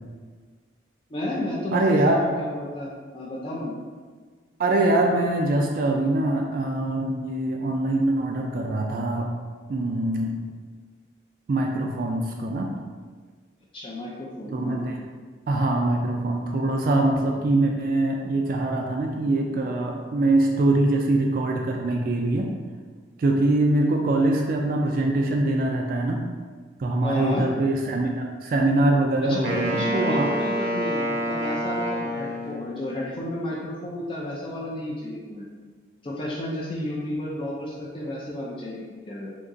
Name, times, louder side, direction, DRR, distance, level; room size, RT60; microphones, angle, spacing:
voice 1, 1.1-3.7 13.7-14.8 27.0-27.4 29.3-35.5 36.0-39.3, left 1 dB, 30° left, -5 dB, 0.4 m, -32 dB
voice 2, 1.7-2.2 4.6-9.3 9.7-10.3 11.5-12.7 14.5-15.0 15.5-22.5 23.2-26.2 26.8-30.3, right 2 dB, 50° right, 1 dB, 0.3 m, -23 dB
Wind instrument woodwind instrument, 29.4-32.9, equal, 90° right, 0.7 m, -28 dB
3.6 x 2.8 x 2.6 m, 1.5 s
head